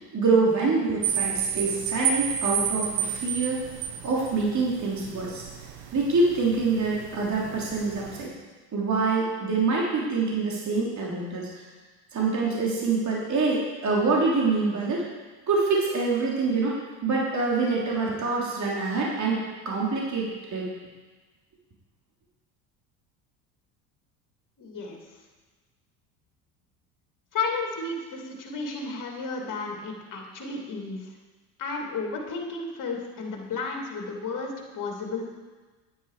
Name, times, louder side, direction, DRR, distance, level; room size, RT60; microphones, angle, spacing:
voice 1, 0.1-3.6 4.0-5.4 5.9-8.3 8.7-11.5 12.1-15.0 15.5-16.8 17.0-20.7, right 3 dB, 35° right, -4 dB, 3.2 m, -25 dB
sound 1, 1.0-8.2, right 8 dB, 70° right, 1.4 m, -31 dB
voice 2, 24.6-25.0 27.3-31.0 31.6-35.2, left 4 dB, 40° left, 1 dB, 2.8 m, -33 dB
10.0 x 9.3 x 4.9 m, 1.3 s
hypercardioid pair, 75°, 48 cm